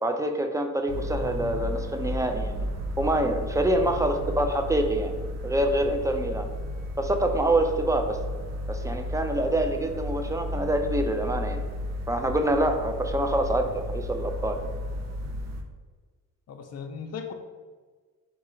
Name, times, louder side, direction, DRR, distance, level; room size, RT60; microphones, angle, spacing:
voice 1, 0.0-2.7 3.0-5.1 5.4-6.5 7.0-8.2 8.7-11.6 12.1-14.6, right 1 dB, 10° right, 6 dB, 0.4 m, -26 dB
sound 1, 0.9-15.6, left 1 dB, 50° right, 0.6 m, -33 dB
voice 2, 1.2-1.7 3.8-4.4 16.5-17.3, left 5 dB, 50° left, 5 dB, 0.6 m, -38 dB
3.6 x 2.9 x 4.3 m, 1.4 s
cardioid pair, 85°, 33 cm